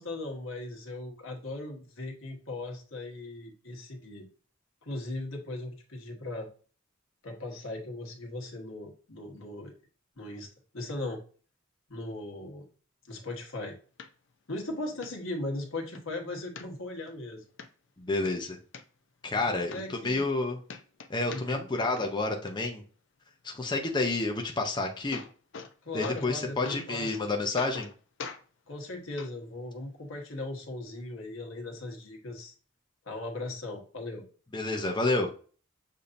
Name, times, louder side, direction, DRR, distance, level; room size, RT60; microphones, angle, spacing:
voice 1, 0.0-4.3 4.8-6.5 7.2-9.7 10.2-10.5 10.7-11.2 11.9-12.7 13.0-13.8 14.5-17.4 19.3-20.3 21.3-21.7 25.8-27.2 28.7-32.5 33.0-34.2, left 2 dB, 85° left, 1 dB, 1.3 m, -38 dB
sound 1, 14.0-14.1 14.6-14.7 15.0-15.1 15.6-16.0 16.6-17.1 17.6-17.7 18.1-18.8 19.4-19.5 19.7-20.4 20.7-21.7 22.0-22.5 24.6-24.7 24.9-25.7 26.0-26.4 26.7-27.2 27.6-27.9 28.2-28.4 29.2-29.3 30.2-30.3, left 5 dB, 65° left, 0.5 m, -42 dB
voice 2, 18.0-18.6 19.2-20.6 21.1-22.8 23.4-25.2 25.9-27.9 34.5-35.3, left 2 dB, 25° left, 2 dB, 0.6 m, -29 dB
6.8 x 2.7 x 2.6 m, 0.40 s
head